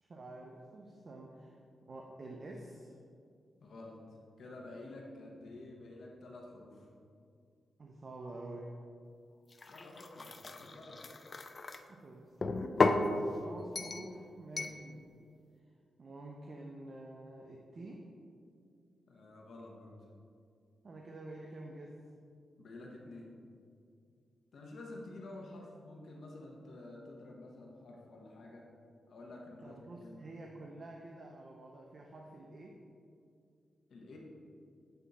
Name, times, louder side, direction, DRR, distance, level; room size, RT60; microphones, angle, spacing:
voice 1, 0.0-1.6 1.9-2.9 7.8-8.8 11.9-12.3 13.4-15.1 16.0-18.0 20.8-22.0 29.6-32.8, right 2 dB, 40° right, 0 dB, 0.5 m, -48 dB
voice 2, 3.6-4.0 4.4-6.9 9.7-11.0 19.1-20.0 22.6-23.3 24.5-28.7 29.1-30.3 33.9-34.2, left 2 dB, 70° left, -1 dB, 1.0 m, -50 dB
sound 1, 9.5-11.8 12.4-13.1 13.8-14.1 14.6-14.8, left 3 dB, 35° left, 0.3 m, -33 dB
7.8 x 3.6 x 4.0 m, 2.4 s
wide cardioid pair, 120°, 0 cm